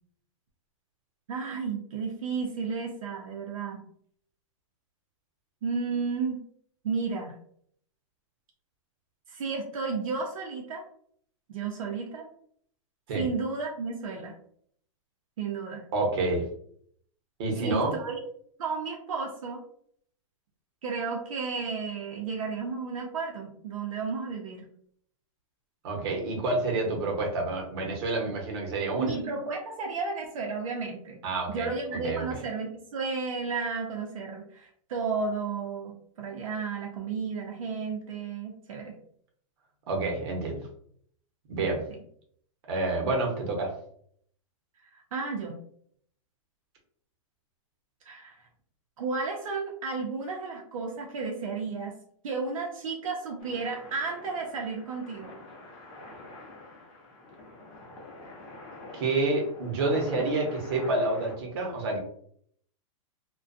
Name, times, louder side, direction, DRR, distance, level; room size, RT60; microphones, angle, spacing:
voice 1, 1.3-3.8 5.6-6.4 6.8-7.4 9.3-10.8 11.5-12.3 13.1-14.3 15.4-15.8 17.6-18.2 18.6-19.6 20.8-24.7 29.0-31.2 31.5-39.0 44.9-45.6 48.0-48.5 49.0-51.9 52.2-55.3, right 4 dB, 75° right, 0 dB, 0.6 m, -33 dB
voice 2, 15.9-16.5 17.4-17.9 25.8-29.1 31.2-31.7 32.0-32.2 39.9-40.6 41.5-41.8 42.7-43.7 58.9-62.0, right 2 dB, 50° right, 1 dB, 0.8 m, -28 dB
sound 1, 53.4-61.4, left 2 dB, 25° left, 0.5 m, -46 dB
2.4 x 2.2 x 2.5 m, 0.63 s
hypercardioid pair, 160°, 17 cm